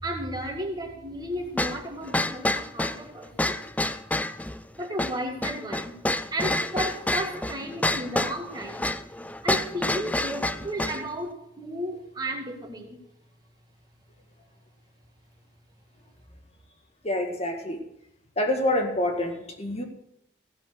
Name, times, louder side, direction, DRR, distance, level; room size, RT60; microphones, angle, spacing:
voice 1, 0.0-3.6 4.7-6.0 6.3-8.9 9.4-13.0, right 1 dB, 20° right, 2 dB, 2.0 m, -34 dB
sound 1, 1.6-11.1, left 1 dB, 10° left, 0.4 m, -28 dB
voice 2, 17.0-17.8 18.4-19.8, left 1 dB, 30° left, 3 dB, 1.9 m, -27 dB
16.0 x 7.6 x 6.4 m, 0.80 s
head